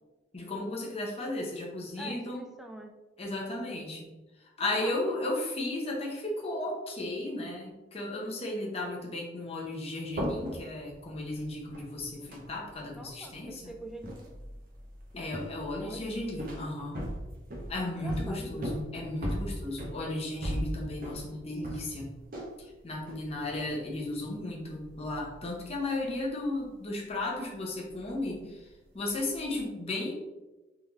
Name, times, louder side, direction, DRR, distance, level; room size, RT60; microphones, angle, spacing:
voice 1, 0.3-2.4 3.2-4.1 4.6-13.7 15.1-17.0 17.7-22.1 22.8-28.6 28.9-30.1, left 2 dB, 35° left, -2 dB, 0.9 m, -35 dB
voice 2, 2.0-2.9 4.6-5.1 12.9-14.3 15.7-16.1 17.9-18.5 28.4-28.6, right 1 dB, ahead, 2 dB, 0.3 m, -45 dB
sound 1, 10.1-22.6 22.9-24.0 24.4-26.7 27.0-28.6 28.9-29.6, equal, 50° right, 0.9 m, -39 dB
3.7 x 3.4 x 3.0 m, 1.1 s
head